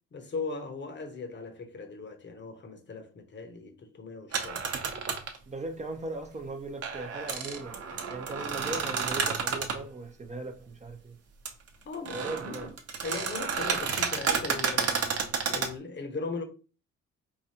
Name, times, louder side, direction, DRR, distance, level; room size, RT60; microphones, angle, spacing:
voice 1, 0.1-4.6 11.8-12.7 13.0-15.0 15.5-16.4, left 4 dB, 35° left, 0.9 m, -38 dB
sound 1, 4.3-5.4 6.8-9.8 11.5-11.6 11.9-15.7, right 5 dB, 55° right, 0.8 m, -31 dB
voice 2, 5.5-7.8 8.1-11.2 12.1-12.7, right 2 dB, 25° right, 0.5 m, -38 dB
4.8 x 2.3 x 2.8 m
cardioid pair, 90°, 30 cm